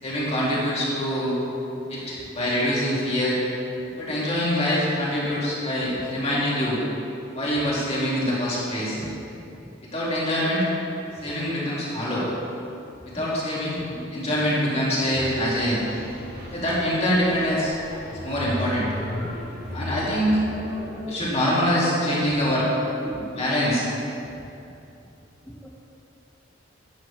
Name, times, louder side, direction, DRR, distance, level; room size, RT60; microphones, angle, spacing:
voice 1, 0.0-1.4 1.9-3.4 4.0-6.8 7.3-9.0 9.9-10.7 11.2-12.2 13.1-13.8 14.1-15.8 16.5-17.7 18.2-18.9 19.7-20.4 21.1-22.7 23.3-23.8, equal, 30° left, -7 dB, 2.6 m, -24 dB
voice 2, 13.8-14.1 18.0-18.3 19.0-19.3 20.8-21.2 23.0-23.3 24.3-24.4 25.5-25.7, equal, 10° left, -5 dB, 0.8 m, -39 dB
sound 1, 15.1-21.3, left 1 dB, 50° right, 2.3 m, -35 dB
12.0 x 9.2 x 3.4 m, 2.8 s
head